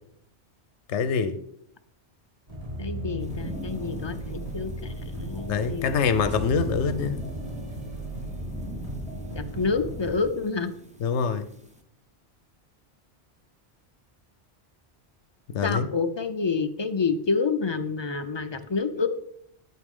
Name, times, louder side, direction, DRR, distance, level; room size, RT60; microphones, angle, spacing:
voice 1, 0.9-1.4 5.5-7.2 11.0-11.4 15.5-15.9, left 6 dB, 85° left, 11 dB, 0.9 m, -25 dB
sound 1, 2.5-10.1, right 1 dB, 30° right, 2.0 m, -35 dB
voice 2, 2.8-5.9 9.4-10.7 15.6-19.1, left 4 dB, 40° left, 8 dB, 0.4 m, -28 dB
sound 2, 3.2-11.8, equal, 5° right, 0.8 m, -41 dB
9.4 x 8.2 x 3.7 m, 0.68 s
omnidirectional pair, 1.2 m